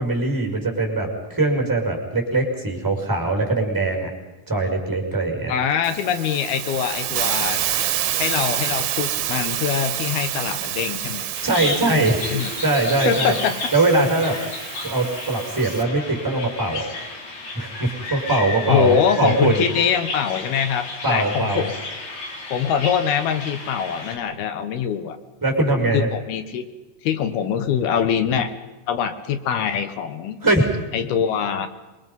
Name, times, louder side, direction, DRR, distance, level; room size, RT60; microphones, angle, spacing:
voice 1, 0.0-4.1 4.5-5.5 11.4-12.2 12.6-13.4 13.7-14.4 14.8-16.8 17.5-19.6 21.0-21.6 25.4-26.1 30.4-30.7, right 2 dB, 5° right, 1 dB, 4.7 m, -21 dB
voice 2, 5.5-7.6 8.2-11.3 11.9-12.5 13.1-13.6 18.7-21.7 22.5-25.2 25.9-26.6 27.0-28.5 28.9-30.4 30.9-31.7, left 8 dB, 70° left, 10 dB, 3.0 m, -23 dB
Hiss, 5.8-15.8, right 11 dB, 70° right, 2.8 m, -28 dB
Bird vocalization bird call bird song, 11.3-24.2, left 3 dB, 45° left, 4.0 m, -33 dB
28.0 x 22.5 x 5.5 m, 1.1 s
omnidirectional pair, 4.9 m